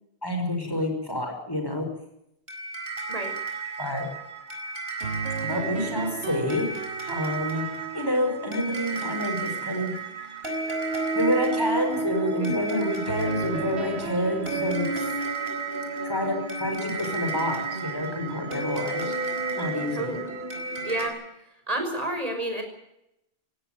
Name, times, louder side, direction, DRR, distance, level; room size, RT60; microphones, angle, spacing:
voice 1, 0.2-1.9 3.8-4.1 5.4-7.7 7.9-9.9 11.2-15.1 16.0-19.1 19.6-20.1, left 1 dB, 20° left, 3 dB, 5.4 m, -28 dB
sound 1, 2.5-21.1, right 4 dB, 65° right, 4.7 m, -32 dB
sound 2, 5.0-10.3 13.1-15.2, right 5 dB, 90° right, 1.8 m, -36 dB
voice 2, 12.4-12.8 19.9-20.3 20.8-21.2 21.7-22.6, right 1 dB, 35° right, 4 dB, 5.9 m, -30 dB
18.0 x 16.5 x 9.2 m, 0.83 s
omnidirectional pair, 1.1 m